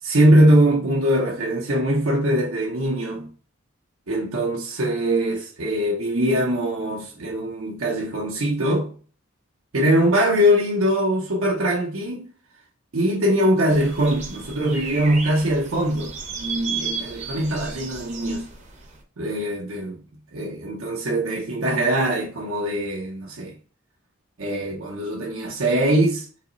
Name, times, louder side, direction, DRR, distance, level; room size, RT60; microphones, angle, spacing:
voice 1, 0.0-3.3 4.1-8.9 9.7-12.3 12.9-18.5 19.2-20.0 20.3-23.6 24.4-26.3, right 1 dB, 70° right, 0.7 m, -22 dB
sound 1, 13.7-19.0, right 5 dB, 35° right, 0.7 m, -34 dB
3.5 x 2.9 x 3.9 m
head